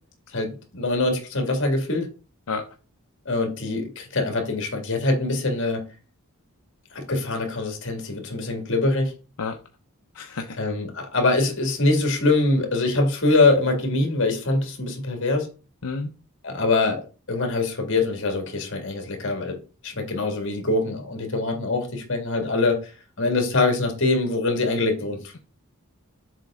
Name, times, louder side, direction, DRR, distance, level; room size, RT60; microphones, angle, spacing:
voice 1, 0.3-2.1 3.3-5.8 6.9-9.1 10.6-15.5 16.4-17.0 17.3-19.6 19.8-22.9 23.2-25.3, left 2 dB, 60° left, 2.1 m, -23 dB
voice 2, 10.1-10.7 15.8-16.1, left 4 dB, 80° left, 0.8 m, -30 dB
7.5 x 5.1 x 3.7 m
head